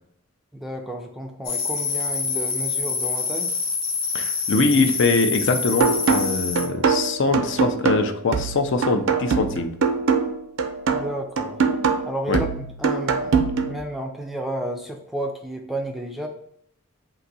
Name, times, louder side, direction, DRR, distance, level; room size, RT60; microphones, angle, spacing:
voice 1, 0.5-3.5 10.9-11.6 12.0-13.3 13.7-16.3, right 1 dB, ahead, 2 dB, 0.4 m, -32 dB
sound 1, 1.4-6.7, left 4 dB, 75° left, 1.0 m, -26 dB
voice 2, 4.1-9.7 12.3-12.4, left 3 dB, 55° left, 7 dB, 0.5 m, -22 dB
sound 2, 5.8-13.8, right 5 dB, 65° right, 0.5 m, -23 dB
3.9 x 2.6 x 4.0 m, 0.72 s
head